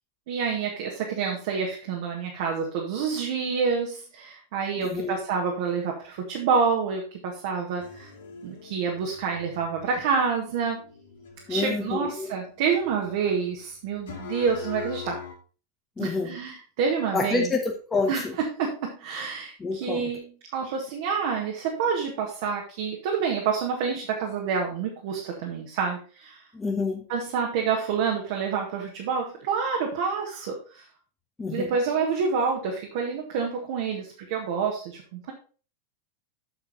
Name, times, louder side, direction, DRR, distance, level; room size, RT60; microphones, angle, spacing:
voice 1, 0.3-8.1 8.4-10.8 11.5-15.2 16.0-17.5 18.1-26.4 27.1-30.8 31.5-35.3, right 6 dB, 50° right, 0 dB, 1.7 m, -28 dB
voice 2, 4.8-5.2 11.5-12.3 16.0-16.3 17.1-18.3 19.6-20.1 26.5-27.0 31.4-31.8, left 3 dB, 15° left, 1 dB, 1.3 m, -28 dB
sound 1, 7.8-15.3, left 7 dB, 60° left, 1.8 m, -43 dB
8.0 x 6.8 x 4.1 m, 0.37 s
figure-of-eight pair, 90°, 0 cm